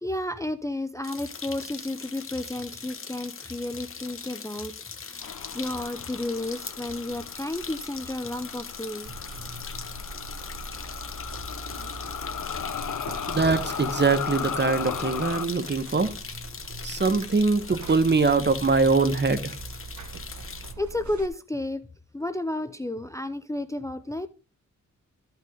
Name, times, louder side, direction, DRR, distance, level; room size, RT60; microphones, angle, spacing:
voice 1, 0.0-4.7 5.0-9.1 20.8-21.8 22.1-24.3, left 1 dB, 10° left, 0.6 m, -32 dB
sound 1, 1.0-20.7, left 5 dB, 45° left, 1.2 m, -41 dB
sound 2, 5.2-15.5, left 8 dB, 70° left, 1.0 m, -36 dB
Buzz, 9.1-21.3, right 2 dB, 65° right, 1.5 m, -42 dB
voice 2, 13.3-16.1 16.8-19.6, right 4 dB, 35° right, 1.2 m, -23 dB
13.5 x 5.8 x 3.8 m
cardioid pair, 85°, 31 cm